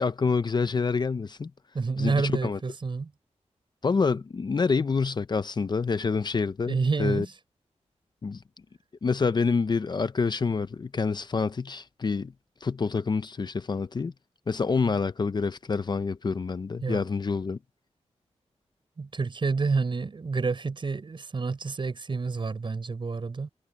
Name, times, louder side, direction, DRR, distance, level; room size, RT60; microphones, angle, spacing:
voice 1, 0.0-1.5 2.0-2.6 3.8-7.3 8.2-8.4 9.0-12.3 12.6-14.1 14.5-17.6, left 4 dB, 40° left, 0.6 m, -27 dB
voice 2, 1.7-3.1 6.7-7.3 16.8-17.0 19.0-23.5, right 4 dB, 45° right, 6.3 m, -29 dB
wide cardioid pair, 120°, 12 cm